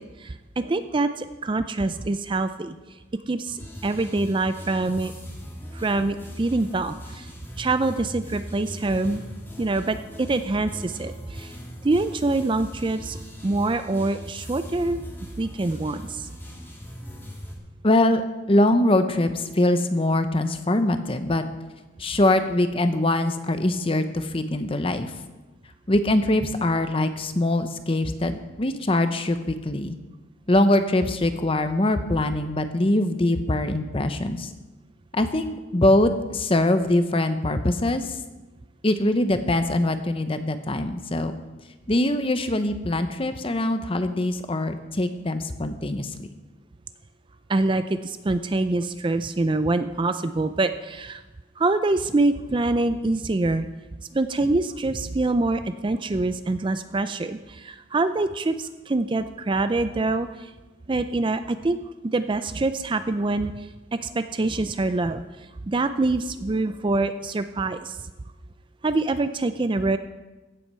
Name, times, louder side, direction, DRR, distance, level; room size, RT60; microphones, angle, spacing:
voice 1, 0.0-2.7 3.3-5.1 5.7-7.3 7.6-9.2 9.6-11.6 11.8-15.0 15.4-16.3 47.5-51.2 51.6-53.7 54.1-60.5 60.9-61.8 62.0-65.2 65.7-68.1 68.8-70.0, right 2 dB, 25° right, 10 dB, 0.4 m, -25 dB
sound 1, 3.6-17.6, equal, 10° left, 1.8 m, -40 dB
voice 2, 17.8-18.2 18.5-21.4 22.0-25.1 25.9-30.0 30.5-34.5 35.1-38.2 38.8-41.3 41.9-46.3, left 1 dB, 30° left, 9 dB, 0.8 m, -23 dB
15.5 x 7.7 x 5.5 m, 1.1 s
head